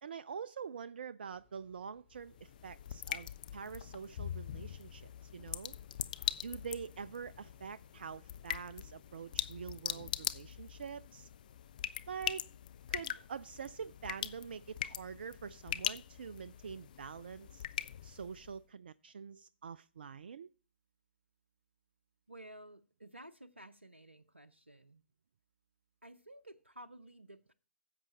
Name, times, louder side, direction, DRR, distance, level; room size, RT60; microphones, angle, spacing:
voice 1, 0.0-5.7 6.4-11.3 12.1-12.5 12.9-17.6 18.0-20.5, right 6 dB, 55° right, 0.4 m, -45 dB
sound 1, 1.3-10.2, left 4 dB, 30° right, 4.0 m, -71 dB
sound 2, 2.1-18.6, left 10 dB, 45° left, 0.6 m, -42 dB
voice 2, 22.3-25.0 26.0-27.5, right 1 dB, 90° right, 0.7 m, -53 dB
11.0 x 7.6 x 4.1 m
figure-of-eight pair, 125°, 6 cm